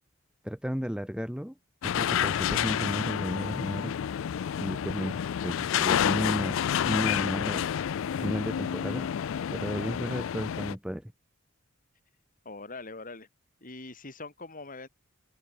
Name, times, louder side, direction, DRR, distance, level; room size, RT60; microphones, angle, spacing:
voice 1, 0.4-1.5 1.8-3.9 4.6-5.1 5.4-6.6 6.8-7.6 8.2-9.1 9.5-11.1, equal, 5° right, 1.3 m, -33 dB
sound 1, 1.8-10.7, left 9 dB, 65° left, 0.3 m, -29 dB
voice 2, 12.5-13.3 13.6-14.9, left 3 dB, 40° left, 3.6 m, -42 dB
head